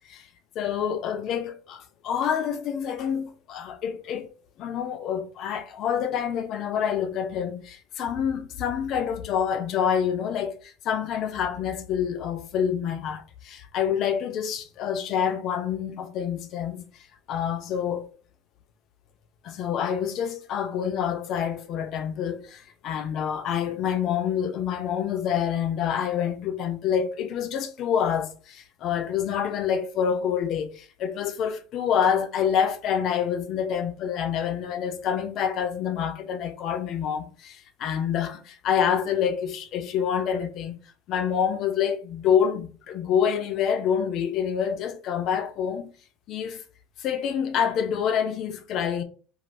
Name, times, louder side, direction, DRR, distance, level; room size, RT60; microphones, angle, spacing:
voice 1, 0.6-4.3 4.6-16.8 17.3-18.1 19.4-40.7 41.1-45.9 46.3-46.6 47.0-49.0, left 8 dB, 50° left, 0.5 m, -27 dB
3.2 x 2.5 x 2.5 m
supercardioid pair, 120°, 0 cm